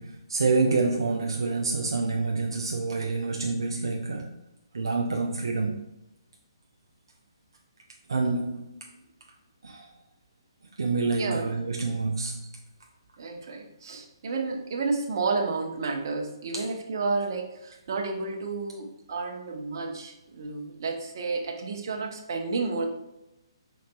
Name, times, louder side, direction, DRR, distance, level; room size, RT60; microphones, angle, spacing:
voice 1, 0.0-4.4 4.7-5.8 8.1-8.7 9.6-9.9 10.8-12.4 16.5-16.6, right 3 dB, 70° right, 1 dB, 0.5 m, -27 dB
voice 2, 11.2-11.6 13.2-22.8, right 4 dB, 50° right, 2 dB, 0.8 m, -31 dB
5.0 x 3.9 x 2.3 m, 0.91 s
figure-of-eight pair, 135°, 3 cm